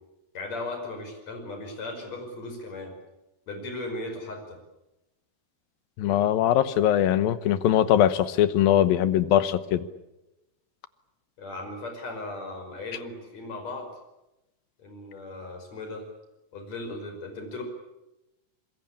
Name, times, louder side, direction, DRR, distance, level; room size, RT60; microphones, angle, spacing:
voice 1, 0.3-2.9 3.5-4.6 11.4-13.9 14.8-16.0 16.5-17.6, left 2 dB, 45° left, 5 dB, 6.7 m, -37 dB
voice 2, 6.0-9.9, left 11 dB, 80° left, 14 dB, 2.8 m, -21 dB
26.0 x 21.5 x 8.7 m, 0.96 s
omnidirectional pair, 4.1 m